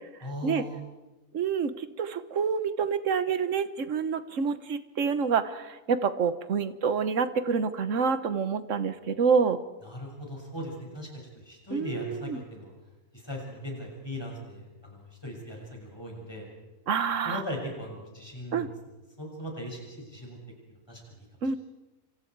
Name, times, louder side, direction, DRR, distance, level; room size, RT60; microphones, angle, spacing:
voice 1, 0.2-0.8 9.8-11.1 11.3-12.7 13.1-16.5 17.2-18.7 19.2-20.4 20.9-21.2, left 1 dB, 15° left, -1 dB, 6.6 m, -39 dB
voice 2, 1.3-9.6 11.7-12.4 16.9-17.4 18.5-18.7 21.4-21.6, right 6 dB, 60° right, 12 dB, 1.4 m, -27 dB
28.5 x 26.5 x 4.7 m, 1.1 s
omnidirectional pair, 1.6 m